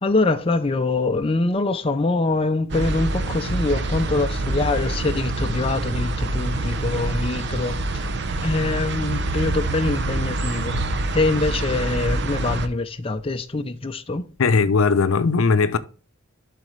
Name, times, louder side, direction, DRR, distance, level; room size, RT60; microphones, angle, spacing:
voice 1, 0.0-8.0 8.4-10.8 11.1-14.2, left 3 dB, 25° left, 0.5 m, -24 dB
sound 1, 2.7-12.7, right 2 dB, 55° right, 0.7 m, -26 dB
voice 2, 14.4-15.8, left 4 dB, 85° left, 0.6 m, -18 dB
12.0 x 4.2 x 3.2 m
head